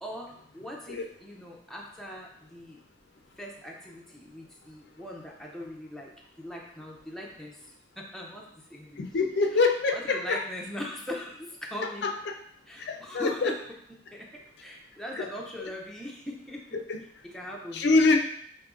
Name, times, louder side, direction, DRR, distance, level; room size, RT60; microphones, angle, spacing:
voice 1, 0.0-2.8 3.4-9.1 9.5-12.1 12.7-13.6 14.1-16.6 17.2-18.0, left 1 dB, ahead, -2 dB, 0.4 m, -40 dB
voice 2, 9.0-10.4 12.0-12.1 12.8-13.5 15.2-15.3 16.9-17.0 17.7-18.2, left 3 dB, 65° left, 4 dB, 0.4 m, -24 dB
5.0 x 3.0 x 2.4 m, 0.67 s
head